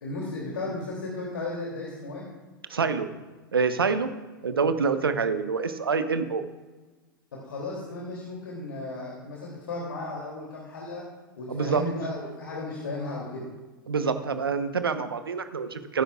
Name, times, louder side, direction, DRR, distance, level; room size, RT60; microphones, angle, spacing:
voice 1, 0.0-2.2 7.3-11.1 11.4-13.4, left 2 dB, 75° left, -3 dB, 2.8 m, -35 dB
voice 2, 2.7-3.1 3.5-4.1 4.4-6.4 11.5-11.8 13.9-16.0, right 5 dB, 80° right, 10 dB, 1.0 m, -26 dB
21.0 x 10.0 x 2.4 m, 1.2 s
figure-of-eight pair, 95°, 12 cm